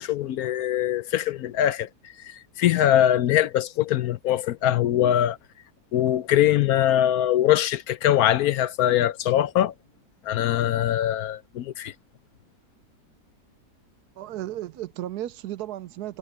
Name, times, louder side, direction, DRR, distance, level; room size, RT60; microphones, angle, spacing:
voice 1, 0.0-1.9 2.2-5.4 5.9-9.7 10.3-11.9, left 11 dB, 70° left, 1.0 m, -22 dB
voice 2, 14.2-16.2, right 13 dB, 75° right, 1.1 m, -34 dB
omnidirectional pair, 1.8 m